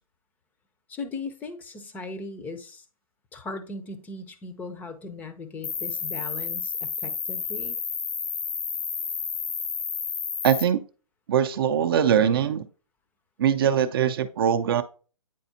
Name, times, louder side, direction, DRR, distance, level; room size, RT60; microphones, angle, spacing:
voice 1, 0.9-2.8 3.3-7.8, left 3 dB, 10° left, 0.6 m, -38 dB
Cricket, 5.6-10.6, left 6 dB, 70° left, 1.1 m, -31 dB
voice 2, 10.4-10.8 11.3-12.6 13.4-14.8, right 8 dB, 40° right, 0.5 m, -22 dB
9.1 x 4.1 x 2.7 m
hypercardioid pair, 140°, 18 cm